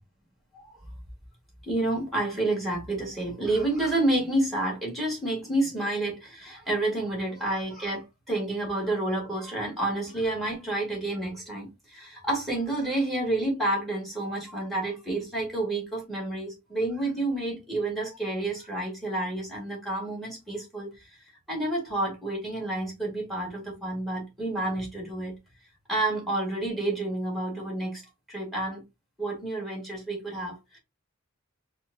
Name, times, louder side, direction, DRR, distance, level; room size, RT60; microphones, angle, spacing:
voice 1, 1.6-25.3 25.9-28.8 29.2-30.8, right 2 dB, ahead, 1.6 m, -29 dB
4.4 x 2.3 x 2.5 m
head